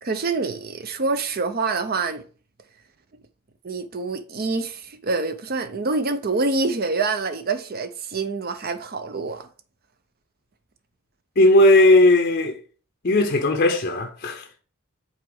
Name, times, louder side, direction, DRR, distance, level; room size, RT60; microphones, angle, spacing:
voice 1, 0.0-2.2 3.6-9.5, right 3 dB, 45° right, 0.6 m, -26 dB
voice 2, 11.4-12.6 13.0-14.5, left 1 dB, 45° left, 0.6 m, -16 dB
5.7 x 4.2 x 3.8 m
head